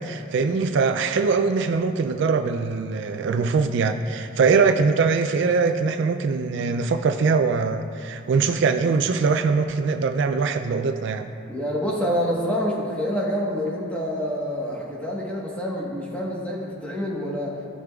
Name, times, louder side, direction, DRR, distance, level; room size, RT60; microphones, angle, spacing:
voice 1, 0.0-11.3, right 4 dB, 65° right, 8 dB, 0.3 m, -22 dB
voice 2, 11.5-17.6, equal, 5° left, -4 dB, 1.2 m, -27 dB
15.5 x 5.2 x 2.3 m, 2.5 s
head